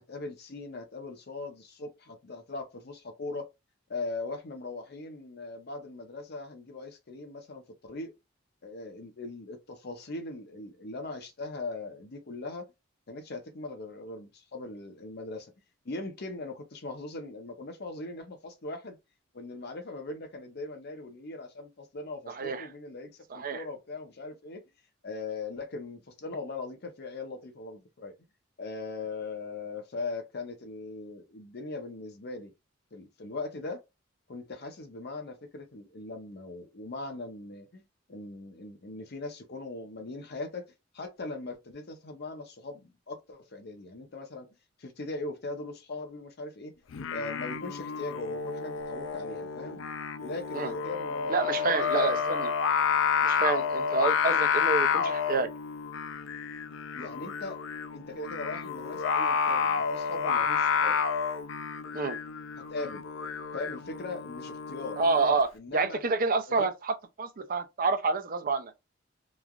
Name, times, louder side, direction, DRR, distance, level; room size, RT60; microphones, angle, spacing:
voice 1, 0.1-3.5 3.9-8.2 8.6-12.7 13.1-15.5 15.8-19.0 19.3-24.6 25.0-28.1 28.6-32.5 32.9-33.8 34.3-37.8 38.1-44.5 44.8-46.8 47.1-49.8 50.2-51.3 51.7-52.4 56.9-57.6 57.9-61.0 62.6-63.0 63.5-65.0 65.5-66.0 66.5-66.7, left 3 dB, 55° left, 0.7 m, -40 dB
voice 2, 22.3-22.7 23.3-23.6 50.5-50.7 51.3-52.5 53.2-55.5 61.9-62.2 65.0-68.7, right 4 dB, 45° right, 0.5 m, -28 dB
Singing, 46.9-65.4, left 6 dB, 80° left, 0.4 m, -30 dB
3.1 x 2.4 x 2.3 m
head